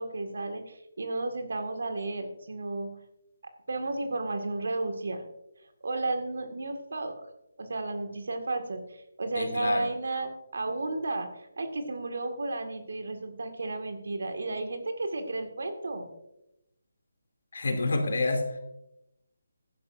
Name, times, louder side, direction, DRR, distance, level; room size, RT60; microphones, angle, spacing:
voice 1, 0.0-2.9 3.7-5.2 5.8-7.1 7.6-16.1, right 2 dB, 60° right, 5 dB, 2.0 m, -33 dB
voice 2, 9.3-9.9 17.5-18.4, left 2 dB, 55° left, 3 dB, 2.7 m, -28 dB
16.5 x 11.5 x 2.6 m, 0.87 s
figure-of-eight pair, 150°, 0 cm